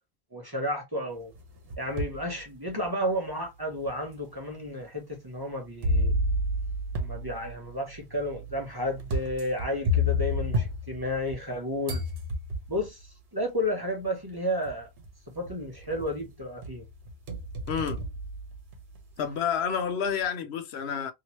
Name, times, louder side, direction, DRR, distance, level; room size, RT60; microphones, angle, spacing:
voice 1, 0.3-1.3 1.8-6.1 7.0-12.0 12.7-14.9 15.3-16.8, left 1 dB, 25° right, 0.8 m, -32 dB
sound 1, 1.3-2.2 2.8-2.9 3.8-3.9 5.8-11.5 11.9-12.9 14.0-14.1 14.6-15.1 15.4-16.2 16.6-19.0, left 1 dB, 70° right, 1.1 m, -30 dB
voice 2, 17.7-18.0 19.2-21.1, left 7 dB, 80° left, 0.9 m, -29 dB
2.9 x 2.7 x 2.9 m
omnidirectional pair, 1.1 m